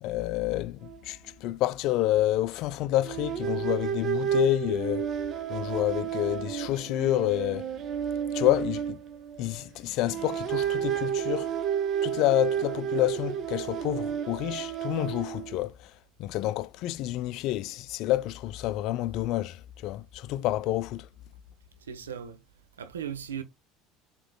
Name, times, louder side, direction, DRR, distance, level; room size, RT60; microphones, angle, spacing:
voice 1, 0.0-5.1 5.5-7.8 8.3-9.0 9.4-11.6 12.0-21.1, left 15 dB, 60° left, 0.4 m, -29 dB
sound 1, 0.8-1.0 1.3-1.5 3.0-9.6 10.0-15.7, right 9 dB, 45° right, 0.9 m, -31 dB
voice 2, 21.8-22.4 22.8-23.4, right 8 dB, 85° right, 1.0 m, -37 dB
7.6 x 3.0 x 2.3 m
hypercardioid pair, 75°, 0 cm